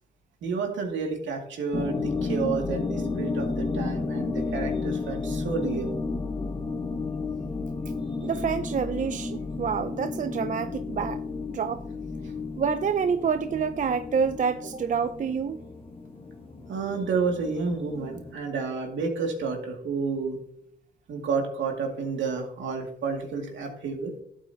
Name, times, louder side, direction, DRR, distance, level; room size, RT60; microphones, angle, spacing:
voice 1, 0.4-5.9 16.7-20.4 21.1-24.1, right 4 dB, 70° right, 2 dB, 2.3 m, -30 dB
sound 1, 1.7-18.3, left 4 dB, 25° left, 1.4 m, -32 dB
voice 2, 8.2-11.2 11.5-11.8 12.6-15.6, right 6 dB, 40° right, 11 dB, 0.5 m, -27 dB
12.0 x 8.5 x 2.8 m, 0.69 s
cardioid pair, 90°, 20 cm